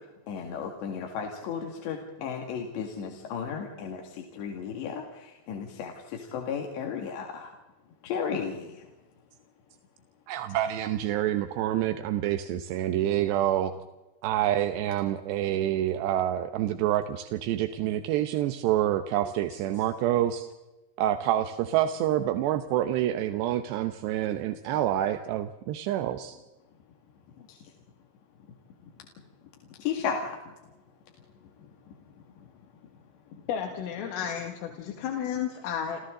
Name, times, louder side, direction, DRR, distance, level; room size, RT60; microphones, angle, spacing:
voice 1, 0.3-7.5 8.0-8.9 27.4-27.6 29.8-30.4 35.3-35.4, left 6 dB, 65° left, 2 dB, 4.1 m, -34 dB
voice 2, 10.3-13.7 14.2-20.5 21.0-26.4, right 12 dB, 75° right, 8 dB, 2.7 m, -27 dB
voice 3, 33.5-36.1, left 8 dB, 90° left, 2 dB, 4.7 m, -32 dB
30.0 x 28.5 x 3.9 m, 1.1 s
omnidirectional pair, 5.7 m